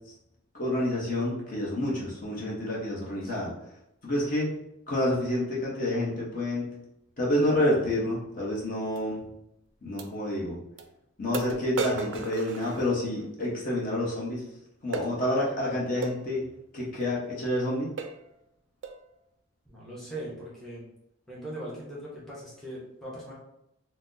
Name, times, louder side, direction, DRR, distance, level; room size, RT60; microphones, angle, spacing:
voice 1, 0.5-3.5 4.0-4.5 4.9-6.7 7.2-9.3 9.8-10.6 11.2-14.4 14.8-16.4 16.7-17.9, left 1 dB, 45° left, -5 dB, 0.9 m, -28 dB
sound 1, 9.0-9.1 10.0-10.1 10.8-10.9 11.3-13.3 14.9-15.1 16.0-16.2 17.0-17.2 17.6-17.7 18.0-18.3 18.8-19.1, right 5 dB, 65° right, 0.3 m, -35 dB
voice 2, 19.6-20.9 21.3-23.3, right 1 dB, ahead, -7 dB, 0.8 m, -40 dB
4.0 x 2.0 x 2.6 m, 0.81 s
head